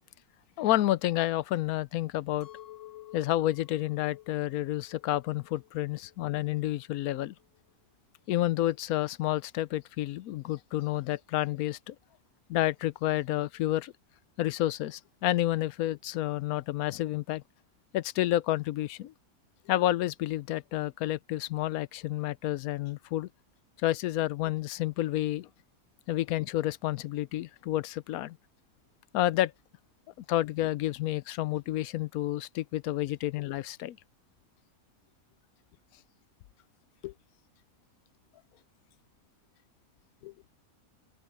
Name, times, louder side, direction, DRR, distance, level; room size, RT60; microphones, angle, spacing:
voice 1, 0.6-2.5 3.1-7.3 8.3-11.9 12.5-13.9 14.4-17.4 17.9-19.1 19.7-23.3 23.8-25.5 26.1-28.4 29.1-29.5 30.3-34.0 37.0-37.1 40.2-40.3, left 14 dB, 85° left, 1.1 m, -30 dB
Chink clink, 2.4-7.6, left 14 dB, 65° left, 1.2 m, -52 dB
omnidirectional pair, 1.5 m